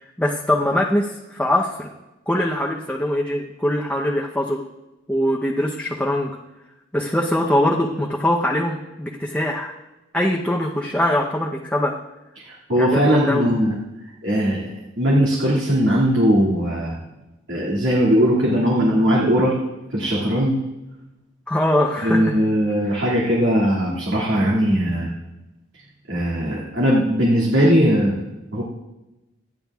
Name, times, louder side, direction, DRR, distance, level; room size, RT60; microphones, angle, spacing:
voice 1, 0.2-1.9 2.3-4.6 5.1-6.3 6.9-9.7 10.1-12.0 12.8-13.4 21.5-22.4 22.9-23.0, left 1 dB, 5° left, -1 dB, 0.7 m, -22 dB
voice 2, 12.5-13.8 14.2-14.7 15.0-16.9 17.5-19.5 19.9-20.6 22.0-25.1 26.1-28.2 28.5-28.6, equal, 75° right, -6 dB, 2.4 m, -19 dB
26.5 x 9.7 x 2.4 m, 1.0 s
head